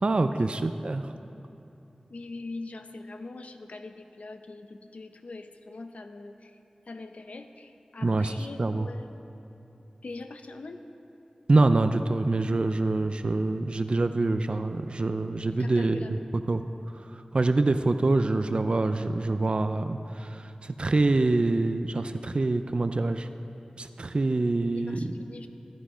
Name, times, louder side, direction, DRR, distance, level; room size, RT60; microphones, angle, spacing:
voice 1, 0.0-1.0 8.0-8.9 11.5-16.2 16.5-16.6 17.1-23.3 23.8-25.1, right 2 dB, 50° right, 9 dB, 0.4 m, -25 dB
voice 2, 2.1-6.6 6.9-9.1 10.0-10.8 15.5-16.3 24.8-25.5, left 3 dB, 75° left, 7 dB, 0.6 m, -42 dB
12.5 x 9.4 x 5.0 m, 2.8 s
wide cardioid pair, 65°, 2 cm